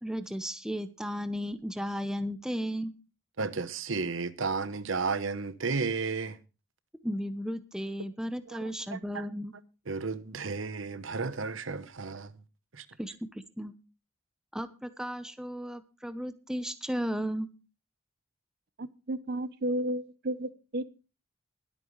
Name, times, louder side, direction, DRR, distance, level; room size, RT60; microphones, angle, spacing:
voice 1, 0.0-2.9 7.0-9.5 13.0-13.1 13.6-13.7 14.5-17.5, equal, 5° right, 0.9 m, -34 dB
voice 2, 3.4-6.4 8.5-8.6 8.9-9.2 9.9-12.3 12.7-12.8, right 4 dB, 80° right, 1.0 m, -33 dB
voice 3, 18.8-20.8, right 1 dB, 55° right, 0.7 m, -33 dB
21.0 x 8.9 x 3.2 m
head